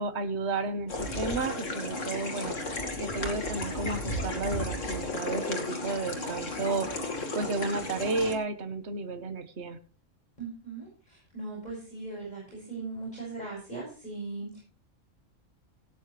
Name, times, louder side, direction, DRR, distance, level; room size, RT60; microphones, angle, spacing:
voice 1, 0.0-2.6 3.0-6.9 7.3-9.8, right 3 dB, 60° right, 8 dB, 1.5 m, -32 dB
sound 1, 0.9-8.4, left 2 dB, 75° left, 2.4 m, -34 dB
voice 2, 10.4-14.6, right 3 dB, 35° left, -4 dB, 6.6 m, -39 dB
17.5 x 9.4 x 3.3 m, 0.37 s
omnidirectional pair, 1.3 m